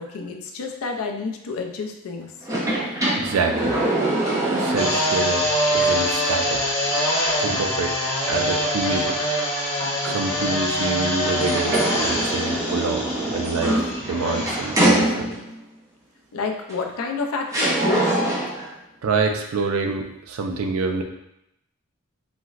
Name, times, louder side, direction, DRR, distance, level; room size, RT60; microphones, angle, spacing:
voice 1, 0.0-2.3 16.3-18.1, left 4 dB, 85° left, 3 dB, 0.4 m, -29 dB
sound 1, 2.4-5.4 5.8-5.9 11.2-15.6 16.7-16.8 17.5-18.7, right 1 dB, 15° right, 0.4 m, -24 dB
voice 2, 2.9-3.8 4.6-6.6 6.9-7.0 7.4-7.9 8.2-9.5 9.8-15.3 18.6-21.0, right 4 dB, 85° right, 4 dB, 0.4 m, -27 dB
sound 2, 4.8-15.1, equal, 30° left, 0.8 m, -24 dB
4.1 x 2.0 x 2.3 m, 0.83 s
head